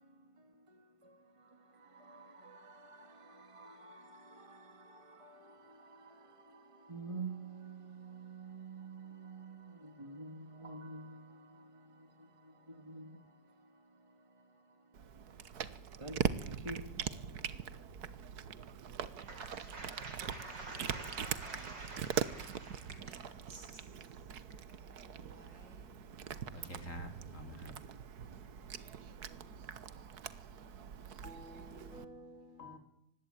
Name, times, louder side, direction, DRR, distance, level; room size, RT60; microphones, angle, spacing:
voice 1, 0.7-13.8 16.0-16.9, right 3 dB, 15° right, 1.9 m, -49 dB
Cat, 14.9-32.0, right 8 dB, 60° right, 1.6 m, -42 dB
voice 2, 19.2-23.7 25.0-25.8, right 2 dB, 75° right, 5.3 m, -49 dB
voice 3, 26.5-27.7 31.2-32.8, equal, 45° left, 3.9 m, -49 dB
24.5 x 19.5 x 9.0 m
omnidirectional pair, 1.9 m